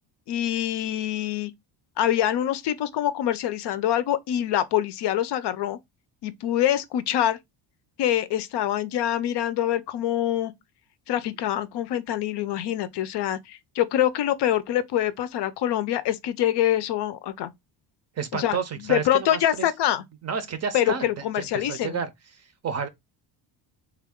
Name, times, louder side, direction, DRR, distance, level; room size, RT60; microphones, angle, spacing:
voice 1, 0.3-1.5 2.0-5.8 6.2-7.4 8.0-10.5 11.1-17.5 18.3-18.6 18.9-20.0 20.7-22.0, left 11 dB, 60° left, 0.5 m, -25 dB
voice 2, 18.2-19.7 20.2-22.1 22.6-22.9, right 6 dB, 35° right, 0.5 m, -30 dB
3.4 x 2.3 x 3.5 m
cardioid pair, 115°, 47 cm